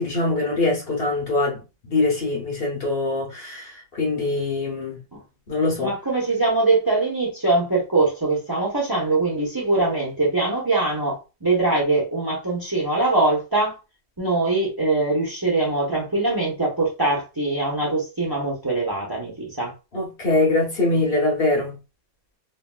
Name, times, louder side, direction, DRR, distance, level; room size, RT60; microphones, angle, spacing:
voice 1, 0.0-5.0 5.5-5.9 19.9-21.8, left 2 dB, 50° left, 0.7 m, -23 dB
voice 2, 5.8-13.8 14.2-19.7, right 2 dB, 20° right, 0.6 m, -22 dB
3.0 x 2.7 x 2.2 m
omnidirectional pair, 2.1 m